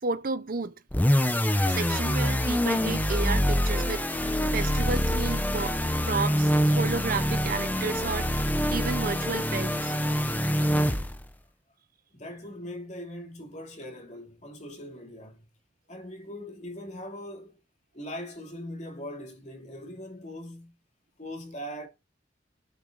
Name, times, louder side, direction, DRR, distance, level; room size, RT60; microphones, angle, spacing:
voice 1, 0.0-0.7 1.7-4.2 4.5-5.8 6.1-8.3 8.7-10.0, right 4 dB, 45° right, 0.7 m, -32 dB
sound 1, 0.9-11.3, equal, 10° left, 0.8 m, -25 dB
voice 2, 10.1-10.4 12.1-15.4 15.9-17.6 17.9-20.7 21.2-21.9, left 1 dB, 35° left, 2.9 m, -41 dB
13.5 x 6.6 x 3.9 m
head